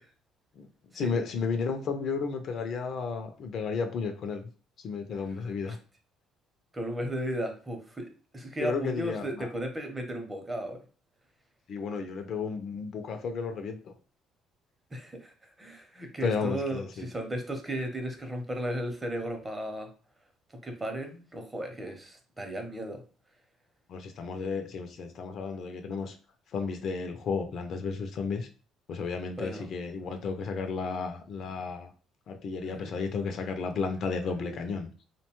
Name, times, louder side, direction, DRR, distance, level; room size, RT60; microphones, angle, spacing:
voice 1, 0.9-4.5 4.8-5.8 8.6-9.5 11.7-13.9 16.2-17.0 23.9-26.1 26.5-28.5 28.9-31.9 32.3-34.9, left 5 dB, 60° left, 6 dB, 0.4 m, -33 dB
voice 2, 6.7-10.8 14.9-19.9 20.6-23.0 29.4-29.7 32.6-32.9 34.4-34.7, right 1 dB, 20° right, 4 dB, 0.7 m, -35 dB
2.6 x 2.2 x 2.9 m, 0.38 s
supercardioid pair, 80°, 0 cm